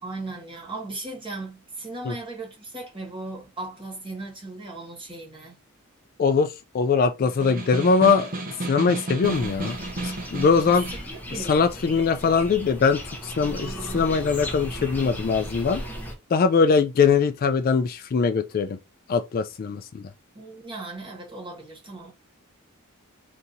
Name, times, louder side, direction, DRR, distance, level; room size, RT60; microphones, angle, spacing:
voice 1, 0.0-5.6 11.0-12.0 20.3-22.1, right 2 dB, 25° right, 1.4 m, -37 dB
voice 2, 6.2-8.3 8.7-9.8 10.0-10.8 11.5-15.8 16.3-18.8 19.1-20.0, left 5 dB, 40° left, 0.3 m, -22 dB
Snare drum, 7.3-11.1, right 2 dB, 40° right, 0.7 m, -32 dB
sound 1, 9.2-16.1, equal, 10° left, 0.8 m, -36 dB
2.8 x 2.7 x 3.8 m
head